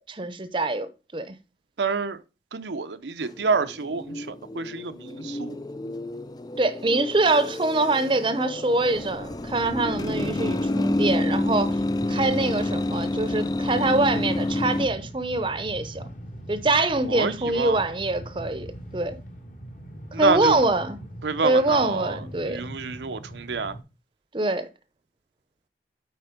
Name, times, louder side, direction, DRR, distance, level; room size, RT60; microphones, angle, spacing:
voice 1, 0.1-1.3 6.6-11.8 12.1-16.0 16.5-19.2 20.2-21.0 21.4-22.6 24.3-24.7, right 2 dB, 30° right, 0.7 m, -24 dB
voice 2, 1.8-2.2 2.5-5.6 7.2-7.3 17.1-17.8 20.1-20.6 21.2-23.8, right 4 dB, 80° right, 0.7 m, -28 dB
sound 1, 3.2-14.9, left 1 dB, 20° left, 0.4 m, -29 dB
Train, 8.7-23.8, equal, 45° left, 1.4 m, -40 dB
8.8 x 4.4 x 5.1 m
head